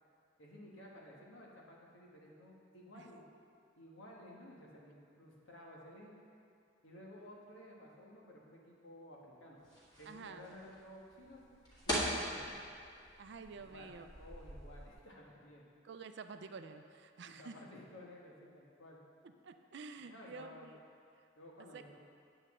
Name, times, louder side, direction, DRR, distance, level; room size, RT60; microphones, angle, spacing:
voice 1, 0.4-3.2 3.8-6.2 6.8-9.6 10.0-11.4 11.9-12.7 13.5-15.6 17.2-19.0 20.1-20.7 21.4-22.0, left 1 dB, 85° left, -3 dB, 1.4 m, -55 dB
sound 1, 9.6-14.9, equal, 20° left, 1.8 m, -42 dB
voice 2, 10.1-10.5 13.2-14.1 15.8-17.5 19.4-20.8 21.7-21.8, right 4 dB, 60° right, 8 dB, 0.4 m, -49 dB
8.5 x 7.8 x 3.7 m, 2.4 s
head